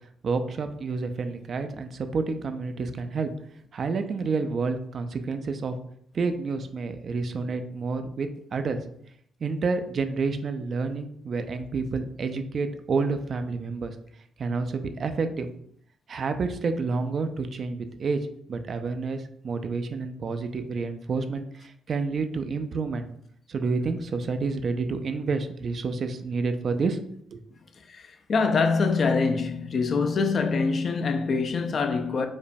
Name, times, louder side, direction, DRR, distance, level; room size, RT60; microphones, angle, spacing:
voice 1, 0.2-3.3 3.7-5.8 6.1-8.8 9.4-13.9 14.4-15.5 16.1-18.2 18.5-23.1 23.5-27.0 27.3-27.4, right 4 dB, 50° right, 0.4 m, -29 dB
voice 2, 27.9-32.3, left 4 dB, 50° left, 0.4 m, -24 dB
5.0 x 2.1 x 2.6 m
cardioid pair, 90°, 0 cm